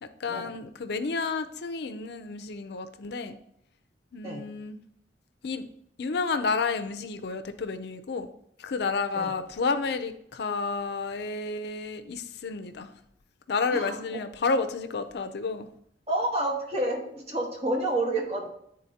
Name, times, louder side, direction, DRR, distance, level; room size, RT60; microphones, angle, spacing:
voice 1, 0.0-3.4 4.1-4.8 5.4-5.6 6.0-8.3 8.6-12.9 13.5-15.7, left 4 dB, 65° left, 9 dB, 0.5 m, -31 dB
voice 2, 13.7-14.2 16.1-18.5, right 1 dB, 35° right, -1 dB, 1.4 m, -29 dB
9.7 x 3.8 x 2.8 m, 0.71 s
head